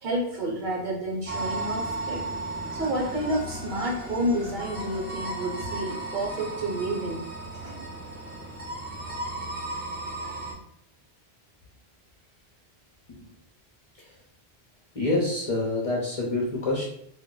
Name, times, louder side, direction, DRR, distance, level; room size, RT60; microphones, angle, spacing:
voice 1, 0.0-2.2 2.7-7.2 7.6-7.8, right 1 dB, 50° right, -3 dB, 0.9 m, -30 dB
sound 1, 1.3-10.5, right 2 dB, 15° right, 0.3 m, -35 dB
voice 2, 14.9-16.9, left 2 dB, 40° left, -4 dB, 0.6 m, -26 dB
2.2 x 2.1 x 3.6 m, 0.68 s
omnidirectional pair, 1.1 m